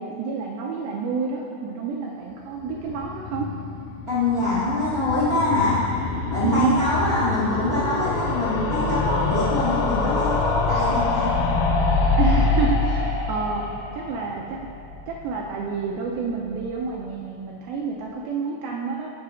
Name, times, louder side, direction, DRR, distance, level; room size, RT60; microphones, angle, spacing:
voice 1, 0.0-3.5 6.3-6.7 12.2-13.7 13.9-14.6 15.1-19.1, right 5 dB, 90° right, -2 dB, 2.2 m, -28 dB
sound 1, 2.5-15.6 15.9-16.0 16.2-16.3 16.5-16.6, left 3 dB, 90° left, 2.8 m, -25 dB
voice 2, 4.1-5.8 6.3-11.3, left 2 dB, 55° right, -12 dB, 0.9 m, -24 dB
14.5 x 5.7 x 2.5 m, 2.6 s
omnidirectional pair, 4.9 m